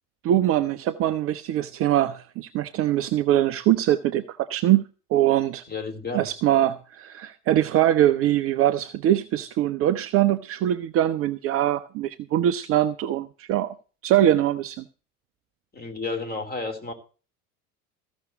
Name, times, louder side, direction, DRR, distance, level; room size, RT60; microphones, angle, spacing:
voice 1, 0.2-4.8 5.1-5.6 6.1-13.7 14.0-14.8, right 12 dB, 30° right, 0.6 m, -22 dB
voice 2, 5.7-6.3 15.7-16.9, left 3 dB, 20° left, 3.0 m, -31 dB
14.5 x 6.1 x 7.6 m
figure-of-eight pair, 75°, 45 cm